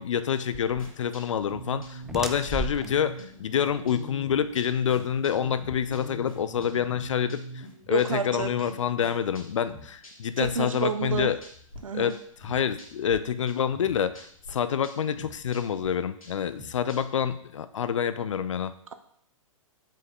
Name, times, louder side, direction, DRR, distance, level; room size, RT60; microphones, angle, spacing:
voice 1, 0.0-11.4 11.9-18.7, left 8 dB, 65° left, 12 dB, 0.6 m, -27 dB
sound 1, 0.5-6.6, right 3 dB, 5° right, 0.4 m, -40 dB
sound 2, 0.8-11.8 12.1-13.2 13.5-17.2, equal, 80° left, 2.1 m, -45 dB
voice 2, 7.9-8.5 10.4-11.3 11.8-12.1, right 5 dB, 75° right, 9 dB, 0.6 m, -29 dB
7.5 x 5.5 x 3.7 m, 0.66 s
figure-of-eight pair, 110°, 18 cm